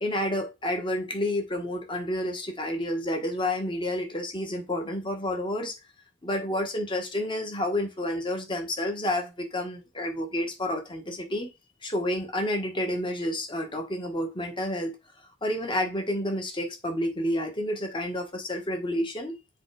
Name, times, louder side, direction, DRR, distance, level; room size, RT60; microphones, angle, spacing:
voice 1, 0.0-5.7 6.2-11.5 11.8-14.9 15.4-19.4, left 1 dB, 25° left, 1.5 m, -30 dB
7.6 x 3.3 x 4.9 m
head